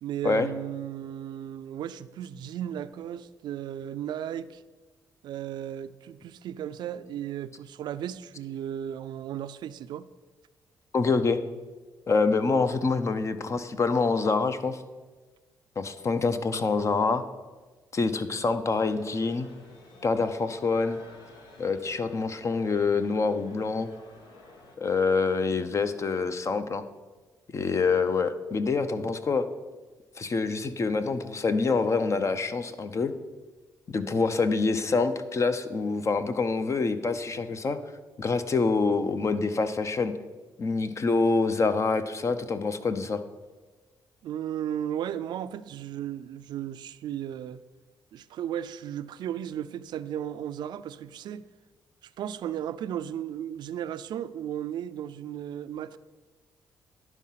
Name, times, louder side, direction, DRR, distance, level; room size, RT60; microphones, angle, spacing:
voice 1, 0.0-4.6 5.2-10.1 44.2-47.6 48.1-51.5 52.0-56.0, right 10 dB, 75° right, 0.4 m, -35 dB
voice 2, 10.9-11.4 12.1-14.8 15.8-17.2 17.9-19.5 20.0-21.0 21.6-23.9 24.8-26.8 27.5-29.5 30.2-33.1 33.9-37.8 38.2-40.1 40.6-43.2, left 4 dB, 40° left, 0.6 m, -26 dB
sound 1, 18.7-24.8, left 2 dB, 80° left, 1.3 m, -52 dB
11.0 x 4.6 x 5.7 m
cardioid pair, 80°, 8 cm